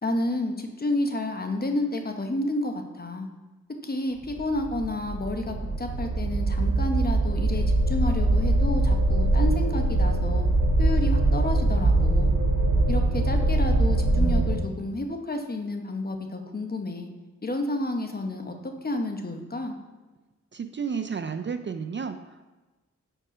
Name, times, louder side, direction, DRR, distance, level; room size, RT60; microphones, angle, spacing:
voice 1, 0.0-3.3 3.8-10.5 10.8-12.3 12.9-17.1 17.4-18.5 18.8-19.8, left 1 dB, 30° left, 5 dB, 0.9 m, -30 dB
sound 1, 4.3-14.5, right 2 dB, 75° right, 1.8 m, -23 dB
voice 2, 20.5-22.4, right 6 dB, 40° right, 9 dB, 0.4 m, -32 dB
4.8 x 4.6 x 5.0 m, 1.2 s
cardioid pair, 50°, 30 cm